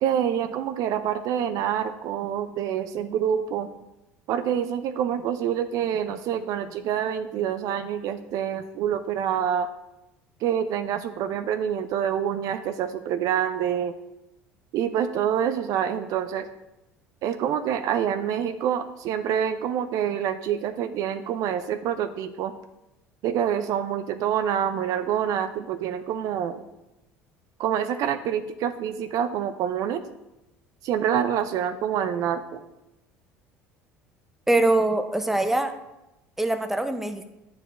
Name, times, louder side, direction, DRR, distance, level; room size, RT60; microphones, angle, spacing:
voice 1, 0.0-3.7 4.3-9.7 10.4-13.9 14.7-16.5 17.2-22.5 23.2-26.6 27.6-30.0 30.8-32.6, right 9 dB, 55° right, 10 dB, 0.4 m, -26 dB
voice 2, 34.5-35.7 36.4-37.3, right 2 dB, 5° right, 8 dB, 0.6 m, -23 dB
8.8 x 4.7 x 2.5 m, 0.95 s
hypercardioid pair, 70°, 7 cm